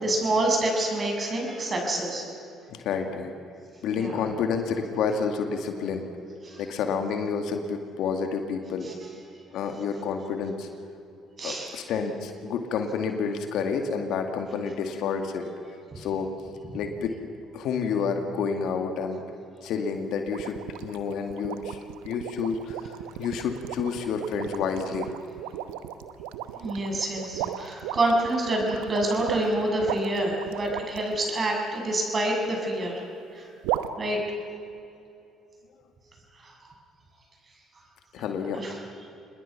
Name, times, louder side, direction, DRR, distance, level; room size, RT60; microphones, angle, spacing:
voice 1, 0.0-2.2 3.9-4.2 6.4-6.6 8.8-8.9 11.4-11.7 26.6-33.0 33.3-33.5 34.0-34.2 36.4-36.5 38.5-38.8, right 1 dB, 40° right, 0 dB, 7.3 m, -27 dB
voice 2, 2.7-3.3 3.8-6.1 6.6-8.9 9.5-10.7 11.4-15.5 16.0-16.3 16.7-17.1 17.5-19.2 19.6-25.1 38.1-38.6, left 5 dB, 65° left, 5 dB, 2.2 m, -29 dB
sound 1, 20.3-31.3 33.6-33.9, right 12 dB, 80° right, 0.9 m, -35 dB
27.5 x 20.5 x 6.0 m, 2.7 s
hypercardioid pair, 55°, 0 cm